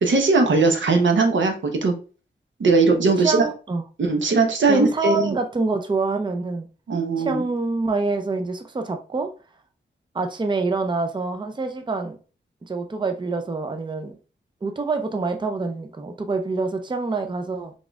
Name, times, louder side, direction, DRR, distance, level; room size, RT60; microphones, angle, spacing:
voice 1, 0.0-1.9 2.6-3.4 4.0-5.4 6.9-7.4, right 3 dB, 80° right, 0.9 m, -19 dB
voice 2, 3.2-3.8 4.7-6.7 7.2-9.3 10.1-12.2 12.7-14.2 14.6-17.7, right 3 dB, 25° right, 0.5 m, -26 dB
3.9 x 3.6 x 2.3 m
wide cardioid pair, 85°, 19 cm